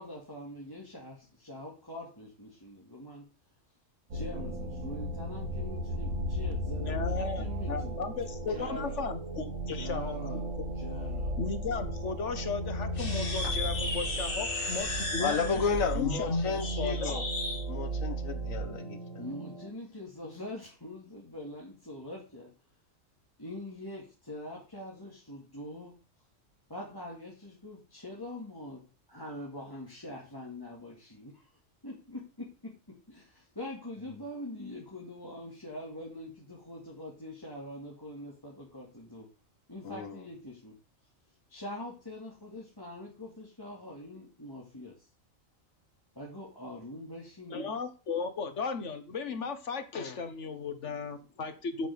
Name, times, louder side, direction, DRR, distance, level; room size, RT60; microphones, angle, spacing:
voice 1, 0.0-3.3 4.1-8.0 8.5-9.0 9.7-10.4 10.8-11.3 19.2-22.5 23.4-25.9 26.7-28.8 29.1-31.5 31.8-32.5 33.1-39.3 39.7-40.7 41.5-45.1 46.2-47.7, left 1 dB, 15° left, 2.5 m, -43 dB
sound 1, 4.1-19.7, right 1 dB, 80° right, 1.9 m, -35 dB
voice 2, 6.9-10.4 11.4-15.6 15.9-17.3 47.5-51.9, left 4 dB, 65° left, 1.6 m, -36 dB
sound 2, 12.9-17.6, left 2 dB, 45° left, 2.0 m, -35 dB
voice 3, 15.2-17.3 17.7-19.0 39.8-40.2, left 6 dB, 85° left, 1.7 m, -32 dB
8.1 x 6.1 x 6.9 m
omnidirectional pair, 1.4 m